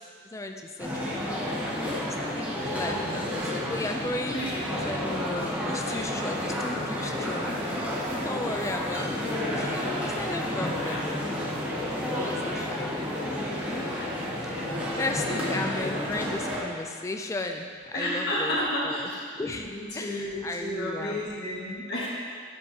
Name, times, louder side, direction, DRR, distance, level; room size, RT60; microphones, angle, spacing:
voice 1, 0.2-4.4 4.7-7.5 8.2-11.2 12.1-12.9 14.4-14.7 15.0-18.6 18.8-19.1 19.3-21.3, left 2 dB, 15° left, 3 dB, 0.3 m, -35 dB
sound 1, 0.8-16.6, left 1 dB, 5° right, 1.0 m, -31 dB
voice 2, 2.9-3.2 4.3-4.6 5.9-6.1 10.8-11.0 12.8-13.1 13.9-14.0 14.4-15.5 15.8-16.1 17.9-19.2 19.6-22.1, left 1 dB, 50° left, -6 dB, 1.7 m, -33 dB
11.5 x 5.4 x 2.9 m, 2.1 s
head